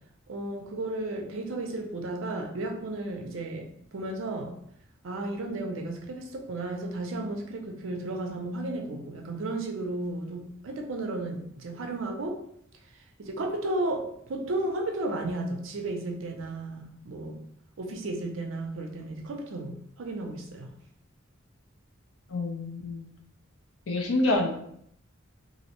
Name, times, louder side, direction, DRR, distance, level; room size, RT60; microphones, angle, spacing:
voice 1, 0.3-4.5 5.0-12.4 13.2-17.4 17.8-20.7, right 2 dB, 70° right, 3 dB, 0.5 m, -33 dB
voice 2, 22.3-23.1 23.9-24.5, left 2 dB, 80° left, 2 dB, 0.5 m, -27 dB
2.5 x 2.0 x 2.8 m, 0.69 s
head